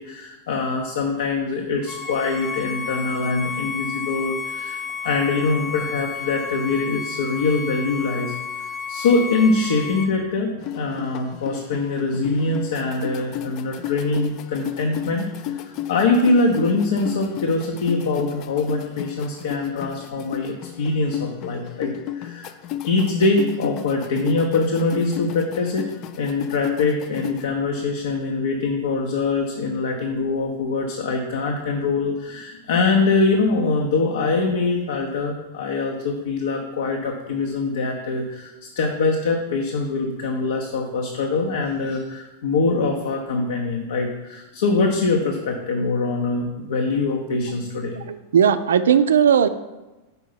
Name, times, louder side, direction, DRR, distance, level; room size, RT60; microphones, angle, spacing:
voice 1, 0.0-22.5 22.8-25.9 26.2-48.0, left 3 dB, 60° left, 1 dB, 0.7 m, -23 dB
Bowed string instrument, 1.9-10.1, left 5 dB, 15° left, 1.0 m, -32 dB
sound 1, 10.6-27.4, left 12 dB, 40° left, 0.4 m, -33 dB
voice 2, 47.9-49.5, right 8 dB, 65° right, 13 dB, 0.4 m, -17 dB
5.6 x 4.6 x 5.6 m, 1.1 s
figure-of-eight pair, 90°, 0 cm